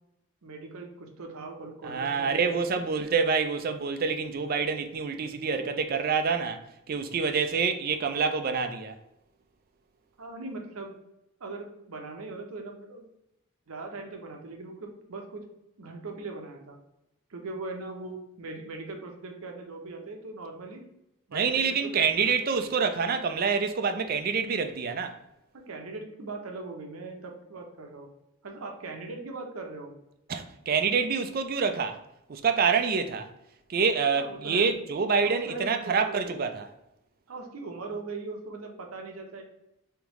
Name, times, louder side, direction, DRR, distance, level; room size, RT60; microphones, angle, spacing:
voice 1, 0.4-2.8 10.2-10.9 11.4-13.1 13.7-15.5 15.8-16.8 17.3-20.8 21.3-22.7 25.5-28.1 28.4-30.0 34.2-34.7 35.2-36.3 37.3-39.4, right 3 dB, 75° right, 0.7 m, -40 dB
voice 2, 1.8-6.6 6.9-9.0 21.3-25.2 30.3-32.0 32.3-33.3 33.7-36.7, right 5 dB, 40° right, 0.3 m, -27 dB
3.5 x 3.5 x 3.0 m
head